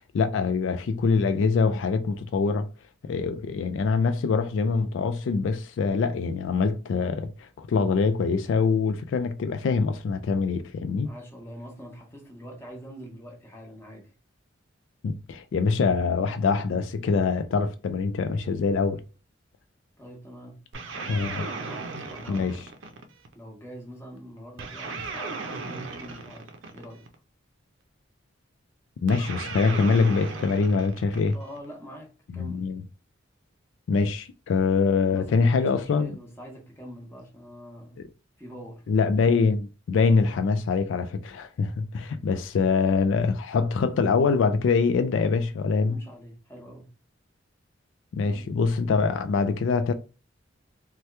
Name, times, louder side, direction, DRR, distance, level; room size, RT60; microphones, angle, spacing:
voice 1, 0.1-2.7 3.0-11.1 15.0-19.0 21.0-21.5 22.3-22.6 29.0-31.4 32.3-32.8 33.9-36.1 38.0-38.1 38.9-46.0 48.1-49.9, left 4 dB, 80° left, 0.3 m, -24 dB
voice 2, 11.0-14.1 20.0-20.6 21.0-22.7 23.3-27.1 31.3-32.7 35.1-38.1 38.4-38.9 45.9-47.0 48.2-48.6, equal, 15° left, 0.9 m, -44 dB
sound 1, 20.7-23.3 24.6-27.1 29.1-31.6, right 4 dB, 90° right, 0.5 m, -36 dB
2.8 x 2.2 x 3.1 m
head